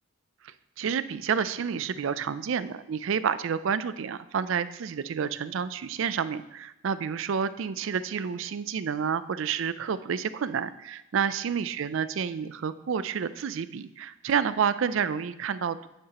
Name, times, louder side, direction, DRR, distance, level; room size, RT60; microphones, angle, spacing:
voice 1, 0.4-15.9, right 7 dB, 65° right, 14 dB, 0.4 m, -29 dB
10.0 x 8.6 x 2.9 m, 0.90 s
head